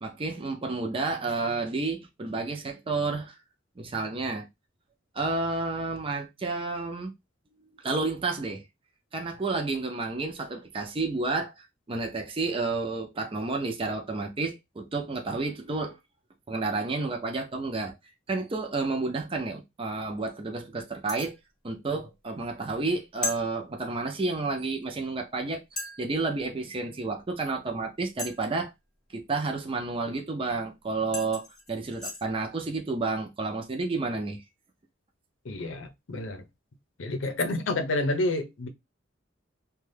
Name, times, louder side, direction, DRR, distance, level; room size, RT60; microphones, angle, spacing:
voice 1, 0.0-3.4 3.8-4.5 5.1-7.1 7.8-8.6 9.1-16.0 16.5-18.0 18.3-21.4 21.6-28.7 29.1-34.4, right 3 dB, 30° right, 0.5 m, -31 dB
sound 1, 21.1-21.4 23.2-23.4 24.8-24.9 25.8-26.0 28.2-28.6 30.6-30.7 31.1-32.2, left 3 dB, 5° left, 0.8 m, -35 dB
voice 2, 35.4-36.5 37.0-38.7, left 2 dB, 75° left, 0.6 m, -29 dB
2.6 x 2.3 x 3.2 m
head